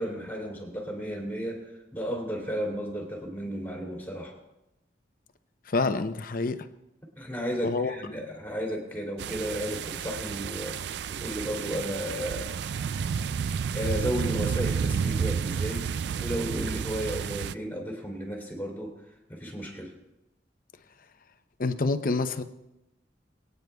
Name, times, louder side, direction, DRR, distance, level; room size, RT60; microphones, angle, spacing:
voice 1, 0.0-4.3 7.2-12.6 13.7-15.9 16.2-18.9 19.3-19.9, equal, 10° left, -2 dB, 2.9 m, -33 dB
voice 2, 5.7-6.7 7.6-7.9 21.6-22.4, left 3 dB, 50° left, 9 dB, 0.7 m, -27 dB
sound 1, 9.2-17.5, right 6 dB, 65° right, 0.3 m, -31 dB
23.0 x 9.4 x 2.3 m, 0.91 s
head